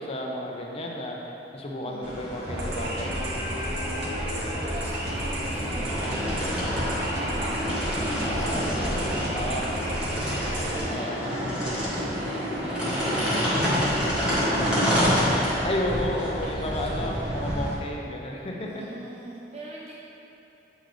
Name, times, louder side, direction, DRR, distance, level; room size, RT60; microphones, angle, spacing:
voice 1, 0.0-3.2 6.8-7.1 8.2-8.6 9.3-9.7 10.9-11.3 15.6-18.8, left 1 dB, 35° left, -1 dB, 0.6 m, -32 dB
voice 2, 1.8-2.2 4.3-6.6 7.1-15.4 16.8-17.6 18.6-19.9, right 1 dB, 35° right, -5 dB, 0.5 m, -41 dB
sound 1, 2.0-17.7, equal, 5° right, 1.5 m, -28 dB
sound 2, 2.5-10.8, right 1 dB, 65° right, 1.0 m, -32 dB
8.0 x 3.9 x 3.1 m, 3.0 s
head